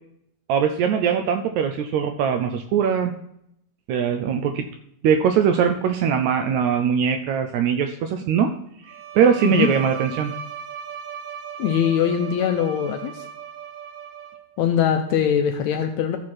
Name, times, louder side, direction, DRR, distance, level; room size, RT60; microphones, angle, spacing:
voice 1, 0.5-3.1 3.9-4.7 5.0-8.5 8.8-10.3, right 7 dB, 90° right, 5 dB, 1.6 m, -21 dB
Bowed string instrument, 8.8-14.7, right 8 dB, 70° right, 1.9 m, -37 dB
voice 2, 11.6-13.2 14.6-16.2, left 8 dB, 85° left, 4 dB, 1.6 m, -22 dB
14.0 x 4.8 x 4.2 m, 0.75 s
omnidirectional pair, 3.9 m